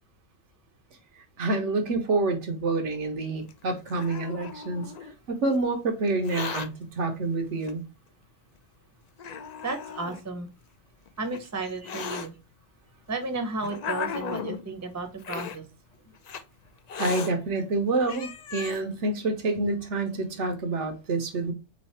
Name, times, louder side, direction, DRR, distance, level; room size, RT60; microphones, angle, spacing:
voice 1, 1.4-4.9 5.3-6.7 7.0-7.8 17.0-21.5, right 3 dB, 65° right, 1.1 m, -27 dB
Hiss, 3.5-5.1 6.1-6.7 7.6-7.7 8.5-8.6 9.2-10.2 11.1-12.3 13.1-14.6 15.2-15.6 16.2-16.4 16.9-17.3 17.8-17.9 18.1-18.8, left 7 dB, 70° left, 0.4 m, -36 dB
voice 2, 9.6-10.5 11.2-12.3 13.1-15.6, right 3 dB, 15° right, 0.7 m, -33 dB
4.0 x 3.1 x 4.1 m
omnidirectional pair, 1.3 m